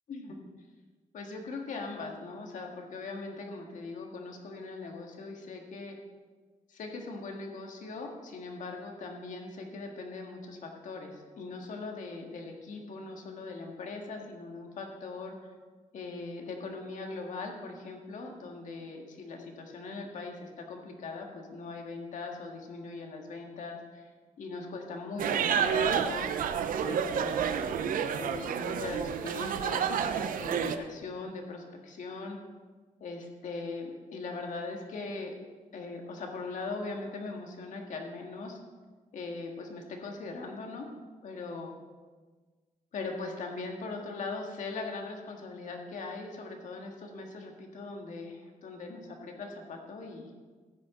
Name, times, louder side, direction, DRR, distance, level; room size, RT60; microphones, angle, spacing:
voice 1, 0.1-0.5 1.1-6.0 6.7-15.5 15.9-24.1 24.4-26.3 26.9-27.7 28.2-32.4 33.0-35.3 35.7-38.6 39.1-40.9 41.2-41.7 42.9-50.3, left 3 dB, 65° left, 2 dB, 1.8 m, -40 dB
sound 1, 25.2-30.8, right 7 dB, 85° right, 0.7 m, -29 dB
14.5 x 9.7 x 3.8 m, 1.4 s
wide cardioid pair, 170°, 14 cm